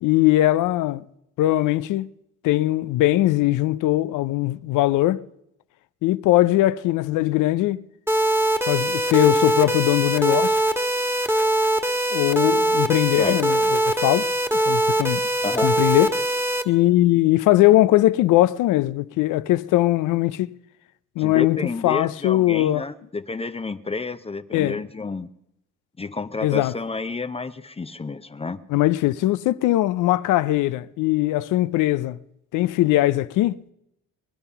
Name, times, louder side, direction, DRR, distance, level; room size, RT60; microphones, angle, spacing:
voice 1, 0.0-1.0 1.4-2.1 2.4-5.2 6.0-7.8 8.7-10.6 12.1-14.3 14.7-15.3 15.6-16.2 16.7-20.5 21.2-22.8 24.5-24.8 26.4-26.7 28.7-32.2 32.5-33.6, left 15 dB, 90° left, 0.6 m, -20 dB
sound 1, 8.1-16.6, right 1 dB, 10° right, 1.5 m, -22 dB
voice 2, 15.4-15.7 21.2-25.3 26.0-28.6, left 3 dB, 20° left, 0.6 m, -30 dB
21.5 x 11.0 x 5.7 m
cardioid pair, 90°, 30 cm